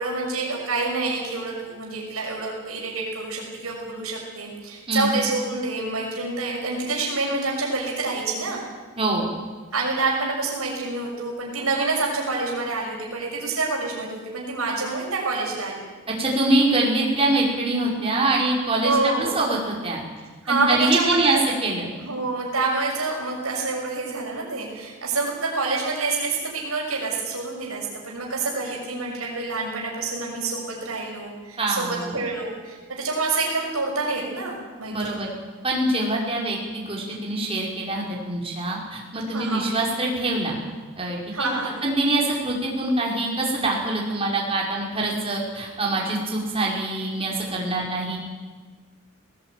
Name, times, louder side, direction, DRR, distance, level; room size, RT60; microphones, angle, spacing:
voice 1, 0.0-8.6 9.7-15.8 18.8-19.4 20.4-21.4 22.0-35.1 39.3-39.7 41.3-41.8, right 3 dB, 85° right, -2 dB, 6.3 m, -27 dB
voice 2, 16.2-20.0 20.5-21.4 21.6-21.9 31.6-32.2 34.9-35.3 35.6-40.6 41.0-41.5 41.8-48.2, right 2 dB, 25° right, -2 dB, 5.1 m, -24 dB
19.5 x 18.5 x 9.3 m, 1.4 s
head